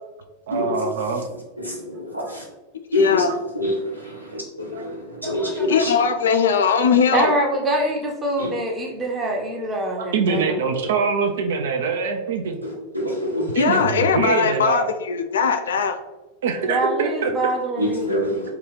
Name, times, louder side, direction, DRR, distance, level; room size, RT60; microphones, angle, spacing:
voice 1, 0.5-1.3 3.2-3.4 4.7-4.9 7.2-7.3 10.0-12.6 13.5-14.9 16.4-17.3, right 5 dB, 60° right, 4 dB, 0.4 m, -24 dB
voice 2, 1.6-2.4 2.9-3.2 3.5-5.9 8.4-8.5 10.3-10.4 12.6-13.5 17.8-18.5, equal, 90° right, -3 dB, 0.8 m, -26 dB
voice 3, 2.9-3.3 5.7-7.3 13.5-16.0, left 6 dB, 65° left, 7 dB, 0.3 m, -20 dB
voice 4, 5.2-6.1 7.1-10.6 16.7-18.2, right 1 dB, 20° right, 1 dB, 0.7 m, -25 dB
3.8 x 2.3 x 3.1 m, 1.1 s
figure-of-eight pair, 90°, 0 cm